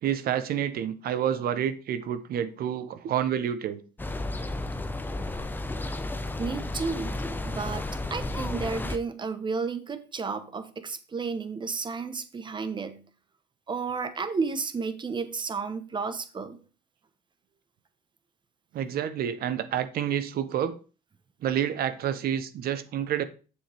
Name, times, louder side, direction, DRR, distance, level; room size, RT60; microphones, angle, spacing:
voice 1, 0.0-3.8 18.7-20.7 21.4-23.2, right 9 dB, 65° right, 1.1 m, -28 dB
sound 1, 4.0-9.0, left 2 dB, 10° left, 0.8 m, -32 dB
voice 2, 6.4-7.1 7.4-13.0 13.7-16.6, right 4 dB, 25° right, 1.2 m, -32 dB
8.7 x 7.3 x 3.6 m
cardioid pair, 110°, 17 cm